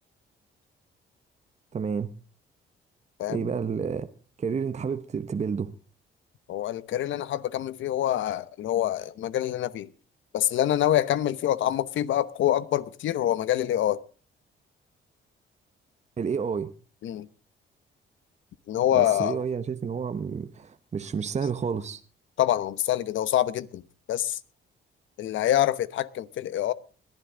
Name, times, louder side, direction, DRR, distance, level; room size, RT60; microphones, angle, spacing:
voice 1, 1.7-2.1 3.3-4.1 4.4-5.7 16.2-16.7 18.9-22.0, right 6 dB, 35° right, 0.9 m, -30 dB
voice 2, 3.2-3.5 6.5-9.9 10.3-14.0 17.0-17.3 18.7-19.4 22.4-23.8 24.1-24.4 25.2-26.7, left 12 dB, 75° left, 0.9 m, -26 dB
21.0 x 11.5 x 3.8 m
cardioid pair, 90°, 20 cm